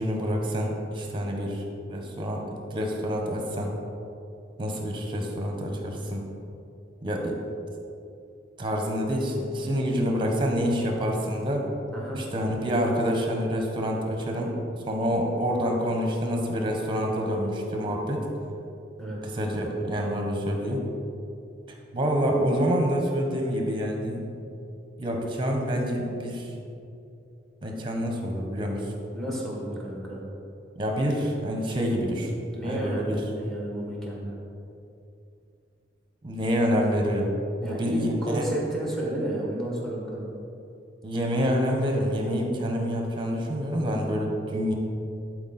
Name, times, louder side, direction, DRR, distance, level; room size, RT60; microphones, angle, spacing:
voice 1, 0.0-1.6 1.9-2.4 2.7-3.7 4.6-6.2 7.0-7.4 8.6-11.7 12.2-14.6 14.8-18.3 19.2-20.8 21.9-24.2 25.0-26.5 27.6-28.8 30.7-32.3 32.6-33.2 36.2-37.3 37.6-38.5 41.0-44.7, equal, 25° right, 1 dB, 1.1 m, -27 dB
voice 2, 29.1-30.2 32.5-34.3 37.6-40.3, right 1 dB, ahead, -3 dB, 1.7 m, -32 dB
11.5 x 4.7 x 4.3 m, 2.7 s
head